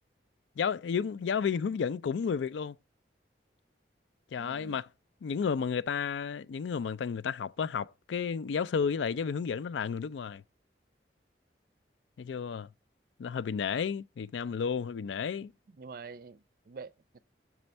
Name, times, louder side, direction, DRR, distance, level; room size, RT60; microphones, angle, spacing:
voice 1, 0.6-2.8 4.3-4.9 5.2-10.4 12.2-12.7 13.2-15.5, left 6 dB, 85° left, 0.4 m, -32 dB
voice 2, 4.4-4.8 15.7-17.2, right 4 dB, 50° right, 0.4 m, -47 dB
6.1 x 4.4 x 5.3 m
head